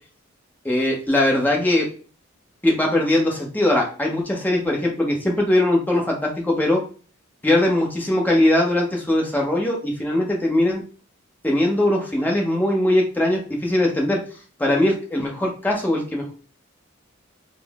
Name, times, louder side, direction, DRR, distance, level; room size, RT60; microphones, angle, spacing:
voice 1, 0.6-1.9 2.6-6.8 7.4-10.8 11.4-14.2 14.6-16.3, left 1 dB, 10° left, -1 dB, 0.9 m, -20 dB
3.8 x 2.1 x 3.5 m, 0.39 s
head